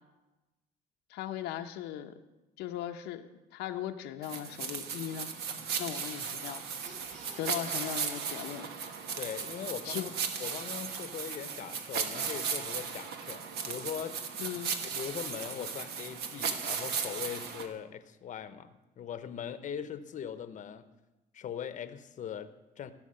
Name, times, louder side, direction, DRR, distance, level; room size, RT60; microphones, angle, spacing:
voice 1, 1.1-2.1 2.6-5.3 5.8-6.6 7.4-8.7 9.8-10.1 14.4-14.7, left 11 dB, 90° left, 5 dB, 0.8 m, -38 dB
sound 1, 4.2-17.7, right 6 dB, 70° right, 1.2 m, -36 dB
sound 2, 6.7-9.7 10.0-10.1 10.3-10.5, right 3 dB, 45° right, 3.1 m, -55 dB
voice 2, 9.2-14.4 14.9-20.9 21.3-22.9, left 8 dB, 50° left, 11 dB, 0.8 m, -41 dB
15.0 x 6.5 x 6.4 m, 1.0 s
cardioid pair, 110°, 17 cm